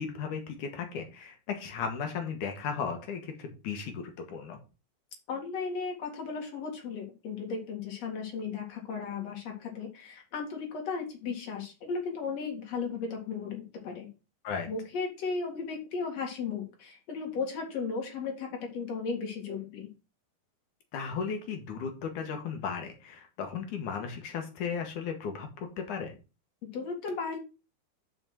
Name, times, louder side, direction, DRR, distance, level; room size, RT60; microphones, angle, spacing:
voice 1, 0.0-4.6 14.4-14.7 20.9-25.5 25.8-26.2, left 6 dB, 65° left, 5 dB, 2.3 m, -35 dB
voice 2, 5.3-14.1 14.7-19.9 26.7-27.4, left 5 dB, 50° left, 2 dB, 2.9 m, -35 dB
5.8 x 5.5 x 6.1 m, 0.31 s
omnidirectional pair, 4.4 m